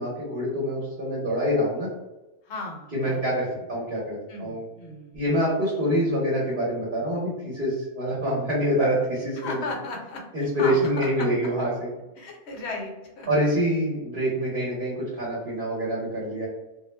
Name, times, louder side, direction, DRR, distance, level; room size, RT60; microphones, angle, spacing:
voice 1, 0.0-1.9 2.9-4.6 5.1-9.6 10.3-11.7 13.3-16.5, equal, 50° right, -6 dB, 0.9 m, -26 dB
voice 2, 2.4-3.2 4.3-5.4 9.4-11.5 12.2-13.3, left 3 dB, 65° left, 1 dB, 0.9 m, -36 dB
2.3 x 2.0 x 3.1 m, 1.0 s
omnidirectional pair, 1.3 m